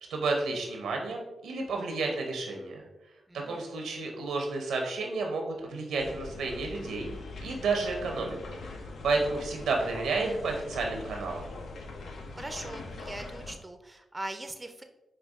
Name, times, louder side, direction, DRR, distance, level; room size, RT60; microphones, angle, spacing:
voice 1, 0.1-2.8 3.3-7.1 7.4-8.6 9.0-11.5, right 3 dB, 85° right, 2 dB, 0.6 m, -31 dB
voice 2, 3.3-3.7 12.3-14.8, right 1 dB, 25° right, 6 dB, 0.4 m, -41 dB
sound 1, 6.0-13.6, left 3 dB, 75° left, 0.4 m, -42 dB
4.9 x 2.3 x 2.4 m, 1.0 s
supercardioid pair, 40°, 0 cm